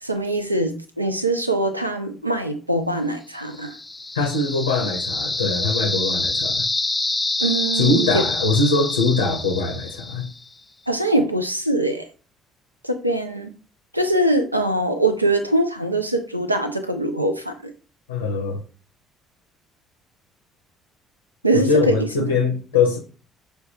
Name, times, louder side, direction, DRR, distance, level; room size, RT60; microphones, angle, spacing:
voice 1, 0.0-3.7 7.4-8.2 10.9-12.1 12.8-13.5 13.9-17.7 21.4-22.3, right 1 dB, 90° right, 0.4 m, -22 dB
sound 1, 3.5-10.4, left 2 dB, 15° left, 0.4 m, -26 dB
voice 2, 4.1-6.6 7.7-10.3 18.1-18.6 21.5-23.0, left 3 dB, 80° left, 0.6 m, -22 dB
6.4 x 2.2 x 2.9 m
figure-of-eight pair, 50°, 0 cm